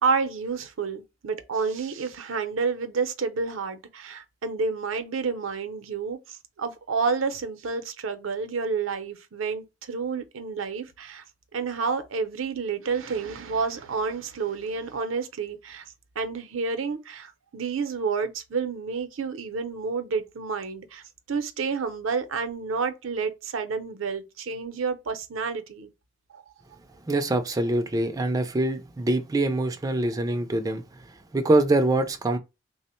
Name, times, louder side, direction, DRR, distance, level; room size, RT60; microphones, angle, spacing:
voice 1, 0.0-11.2 11.5-15.9 16.2-25.9 26.3-26.4, right 5 dB, 80° right, 0.6 m, -29 dB
voice 2, 27.0-32.4, right 2 dB, 20° right, 0.4 m, -24 dB
3.3 x 2.1 x 4.2 m
head